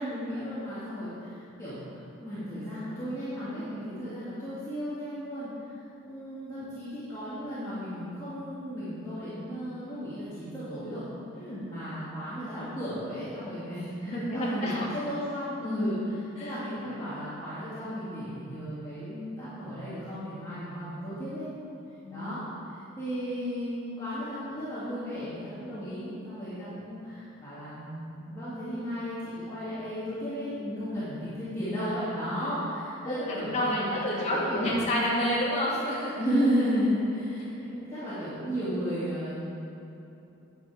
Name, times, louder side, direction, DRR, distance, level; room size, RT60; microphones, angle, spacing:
voice 1, 0.0-11.0 11.3-21.4 22.1-35.0 36.2-39.5, equal, 15° left, -14 dB, 2.1 m, -34 dB
voice 2, 14.1-14.9 16.4-16.5 22.0-22.3 33.0-36.2, equal, 30° left, -7 dB, 2.1 m, -29 dB
9.6 x 7.2 x 4.9 m, 2.9 s
head